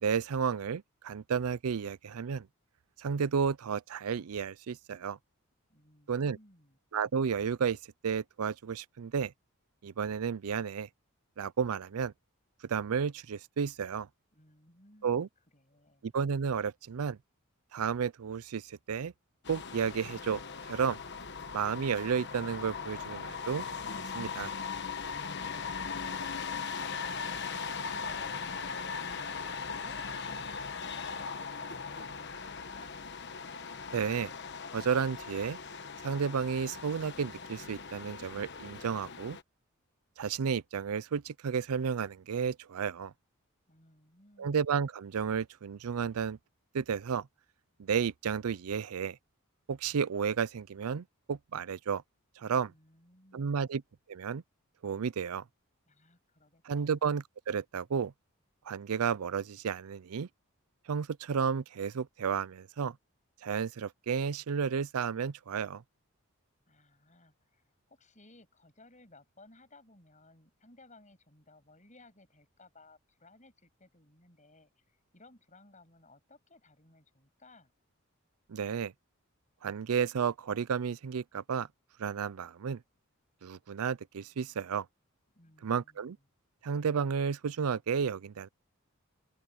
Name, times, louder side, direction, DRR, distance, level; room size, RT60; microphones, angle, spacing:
voice 1, 0.0-2.5 3.0-5.2 6.1-6.4 6.9-9.3 9.8-10.9 11.4-12.1 12.7-14.1 15.0-15.3 16.0-17.2 17.7-19.1 19.5-21.0 21.5-23.7 24.1-24.5 33.9-34.3 34.7-35.6 36.0-39.4 40.2-43.1 44.4-46.4 46.7-47.3 47.8-49.2 49.7-52.0 52.4-52.7 53.3-53.8 54.1-54.4 54.8-55.4 56.6-58.1 58.7-60.3 60.9-63.0 63.4-65.8 78.5-78.9 79.6-81.7 82.0-82.8 83.4-84.9 85.6-86.2 86.6-88.5, right 6 dB, 80° right, 0.5 m, -32 dB
voice 2, 5.7-6.8 14.3-15.3 15.5-16.1 25.3-33.0 43.7-44.6 52.4-53.8 55.9-57.1 66.7-77.7 85.3-86.2, left 2 dB, 35° left, 7.9 m, -59 dB
sound 1, 19.4-39.4, left 5 dB, 50° left, 1.1 m, -39 dB
open air
head